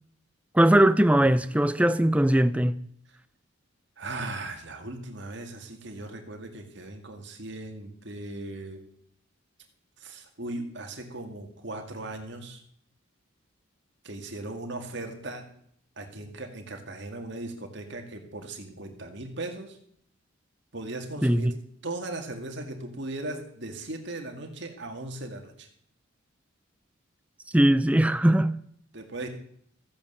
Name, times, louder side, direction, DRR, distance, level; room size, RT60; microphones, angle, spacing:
voice 1, 0.5-2.8 21.2-21.5 27.5-28.6, right 1 dB, 5° right, 0.4 m, -20 dB
voice 2, 4.0-8.8 10.0-12.6 14.0-15.4 16.0-19.8 20.7-21.5 21.8-25.7 28.9-29.3, right 2 dB, 55° right, 2.1 m, -38 dB
15.0 x 8.7 x 6.8 m
head